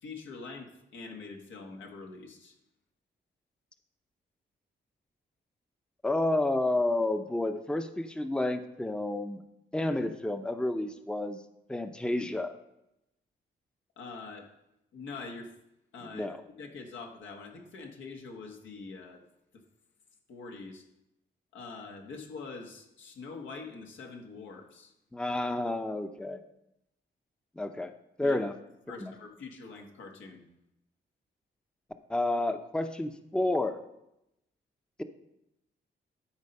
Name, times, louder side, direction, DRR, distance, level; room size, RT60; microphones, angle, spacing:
voice 1, 0.0-2.5 14.0-14.5 14.9-15.5 15.9-16.3 16.6-19.2 19.5-19.6 20.3-20.8 21.5-24.9 28.2-28.4 28.9-30.4, left 4 dB, 90° left, 2 dB, 1.5 m, -44 dB
voice 2, 6.0-9.4 9.7-11.4 11.7-12.5 16.1-16.4 25.1-26.4 27.6-27.9 28.2-28.5 29.0-29.1 32.1-33.8, left 2 dB, 5° left, 9 dB, 0.6 m, -30 dB
12.0 x 4.5 x 5.4 m, 0.85 s
cardioid pair, 85°, 19 cm